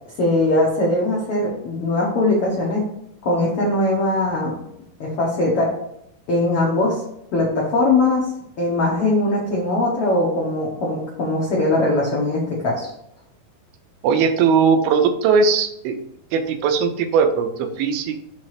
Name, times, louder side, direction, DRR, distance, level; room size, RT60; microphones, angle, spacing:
voice 1, 0.2-2.9 3.2-4.5 5.0-5.7 6.3-7.0 7.3-8.3 8.6-12.9, left 2 dB, 80° left, -3 dB, 1.2 m, -20 dB
voice 2, 14.0-16.0 16.3-18.2, right 5 dB, 85° right, 7 dB, 2.5 m, -19 dB
5.8 x 3.1 x 5.7 m, 0.78 s
omnidirectional pair, 4.3 m